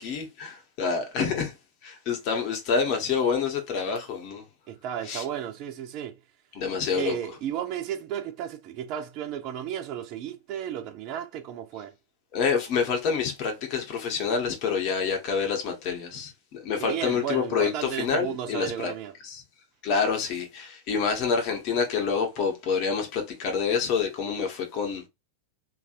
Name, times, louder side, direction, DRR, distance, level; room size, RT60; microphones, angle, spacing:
voice 1, 0.0-1.5 1.8-4.4 5.1-5.2 6.5-7.2 12.3-18.9 19.2-19.4 19.8-25.1, left 6 dB, 40° left, 1.0 m, -27 dB
voice 2, 4.7-6.2 6.9-11.9 16.8-19.1, right 10 dB, 40° right, 0.5 m, -33 dB
2.9 x 2.6 x 2.5 m
figure-of-eight pair, 90°, 0 cm